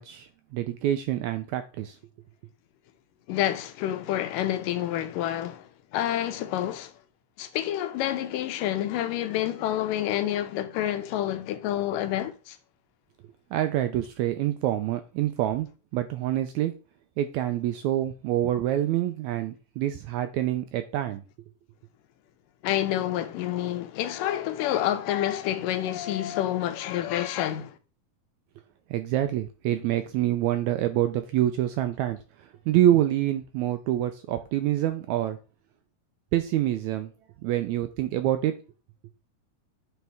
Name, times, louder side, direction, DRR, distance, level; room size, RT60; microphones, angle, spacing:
voice 1, 0.0-2.0 13.5-15.7 15.9-16.7 17.2-21.2 28.9-35.4 36.3-37.1 37.4-38.5, right 12 dB, 80° right, 1.7 m, -26 dB
voice 2, 3.3-6.9 7.4-12.6 22.6-27.8, left 12 dB, 90° left, 2.4 m, -28 dB
9.2 x 4.1 x 3.4 m
omnidirectional pair, 3.7 m